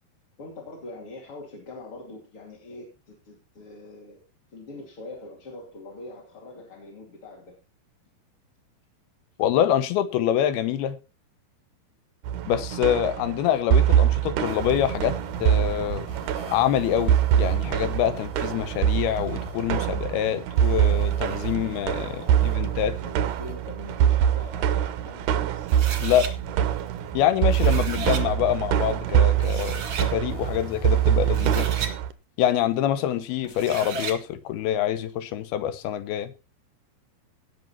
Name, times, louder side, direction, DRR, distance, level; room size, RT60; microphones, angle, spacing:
voice 1, 0.4-4.2 4.5-7.6 22.0-25.7, left 2 dB, 35° left, 3.1 m, -43 dB
voice 2, 9.4-11.0 12.5-16.1 16.5-22.9 26.0-26.3 27.1-31.7 32.4-36.3, left 10 dB, 75° left, 2.8 m, -25 dB
sound 1, 12.2-32.1, right 10 dB, 80° right, 1.8 m, -24 dB
sound 2, 14.4-31.6, left 4 dB, 60° left, 3.0 m, -45 dB
sound 3, 25.7-26.3 27.3-28.2 29.1-29.2 29.4-30.1 31.2-32.0 33.4-34.2, right 5 dB, 55° right, 1.6 m, -34 dB
18.5 x 6.3 x 4.3 m
omnidirectional pair, 4.6 m